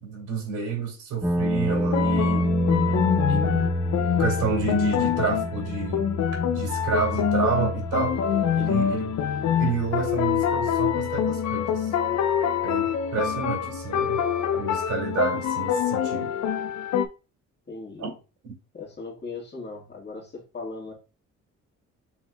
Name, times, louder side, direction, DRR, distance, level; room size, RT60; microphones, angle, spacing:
voice 1, 0.0-2.6 3.3-3.7 4.2-6.1 6.5-8.2 8.5-9.1 9.6-11.9 12.6-14.2 14.5-16.3 18.0-18.1 18.4-18.5, right 5 dB, 80° right, 2.6 m, -29 dB
sound 1, 1.2-15.3, equal, 5° right, 0.7 m, -30 dB
sound 2, 1.7-17.1, left 9 dB, 65° left, 0.6 m, -26 dB
voice 2, 17.7-18.1 18.7-20.9, left 3 dB, 35° left, 1.8 m, -38 dB
6.2 x 3.6 x 2.3 m
cardioid pair, 90°, 30 cm